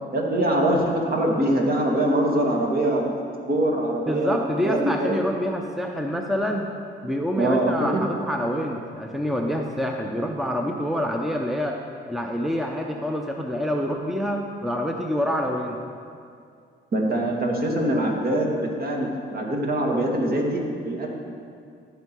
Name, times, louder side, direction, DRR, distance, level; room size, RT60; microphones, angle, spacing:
voice 1, 0.1-3.0 3.5-4.4 4.6-5.2 7.4-8.0 16.9-21.1, right 1 dB, 50° right, 0 dB, 1.9 m, -23 dB
voice 2, 4.1-6.7 7.0-11.8 12.1-15.8, equal, ahead, 2 dB, 0.7 m, -26 dB
14.5 x 5.7 x 4.5 m, 2.3 s
cardioid pair, 90°, 20 cm